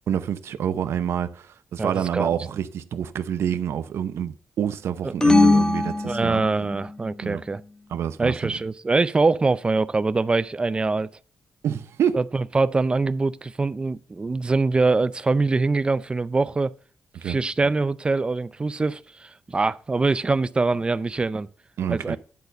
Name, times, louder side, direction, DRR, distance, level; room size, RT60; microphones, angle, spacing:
voice 1, 0.1-6.4 7.2-7.4 7.9-8.5 11.6-12.2 17.2-17.4 21.8-22.2, right 9 dB, 80° right, 0.7 m, -27 dB
voice 2, 1.8-2.3 5.0-5.1 6.0-7.6 8.2-11.1 12.1-16.8 17.2-21.5 21.9-22.2, right 3 dB, 20° right, 0.4 m, -23 dB
sound 1, 5.2-6.9, left 3 dB, 15° left, 0.9 m, -20 dB
10.5 x 4.1 x 7.7 m
wide cardioid pair, 125°, 4 cm